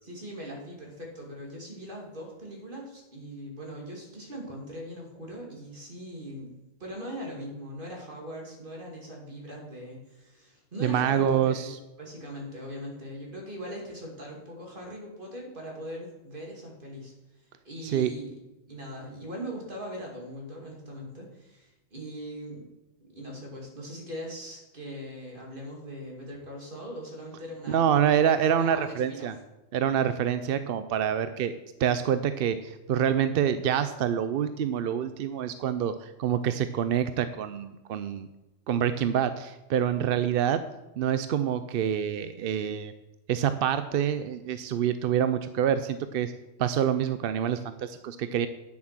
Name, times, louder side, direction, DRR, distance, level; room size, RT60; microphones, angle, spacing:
voice 1, 0.0-6.5 6.8-17.1 17.6-18.3 18.7-22.7 23.1-29.3, equal, 40° right, -1 dB, 2.8 m, -40 dB
voice 2, 10.8-11.8 17.8-18.1 27.7-29.3 29.7-38.3 38.7-40.6 41.0-42.9 43.3-46.3 46.6-48.5, right 9 dB, 65° right, 11 dB, 0.6 m, -26 dB
9.5 x 7.2 x 6.0 m, 0.99 s
omnidirectional pair, 1.4 m